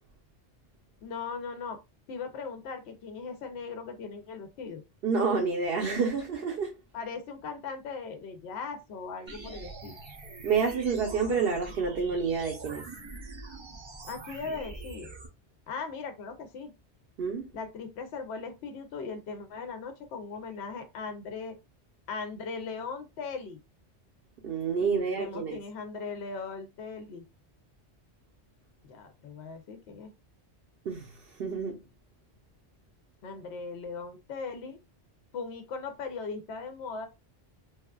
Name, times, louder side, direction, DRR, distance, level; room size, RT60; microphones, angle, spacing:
voice 1, 1.0-1.8 2.1-4.8 6.9-10.0 14.1-15.1 15.7-16.7 17.5-21.6 22.1-23.6 24.8-27.2 28.8-30.1 33.2-34.8 35.3-37.1, left 5 dB, 75° left, 0.8 m, -39 dB
voice 2, 5.0-6.7 10.4-12.9 17.2-17.5 24.4-25.6 30.8-31.8, right 5 dB, 65° right, 0.9 m, -29 dB
sound 1, 9.3-15.3, right 3 dB, 40° right, 0.4 m, -44 dB
3.1 x 2.3 x 2.2 m
omnidirectional pair, 1.2 m